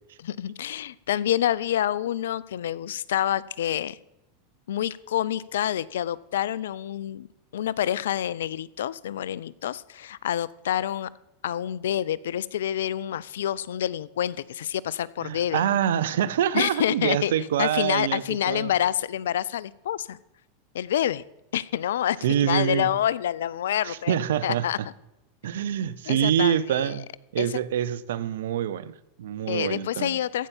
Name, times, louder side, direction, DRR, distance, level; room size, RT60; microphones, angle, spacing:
voice 1, 0.2-4.0 4.7-7.3 7.5-11.1 11.4-15.7 16.5-17.3 17.6-20.2 20.7-21.2 21.5-24.2 24.4-24.8 26.1-27.0 27.4-27.6 29.5-30.5, left 11 dB, 80° left, 0.4 m, -27 dB
voice 2, 15.2-18.7 22.2-22.9 23.8-24.9 25.4-27.0 27.3-30.2, right 10 dB, 75° right, 0.6 m, -26 dB
14.5 x 5.6 x 7.1 m
hypercardioid pair, 100°, 0 cm